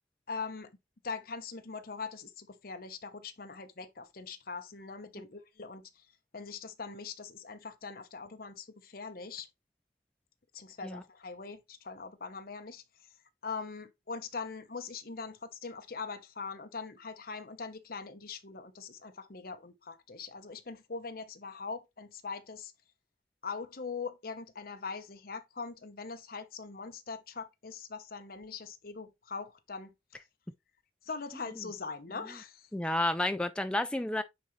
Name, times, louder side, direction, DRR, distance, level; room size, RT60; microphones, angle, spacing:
voice 1, 0.3-0.7 1.0-6.1 6.3-9.5 10.5-13.1 13.4-22.7 23.4-29.9 31.0-32.7, left 4 dB, 55° left, 0.9 m, -42 dB
voice 2, 32.7-34.2, left 1 dB, 5° left, 0.4 m, -30 dB
9.2 x 3.9 x 3.1 m
head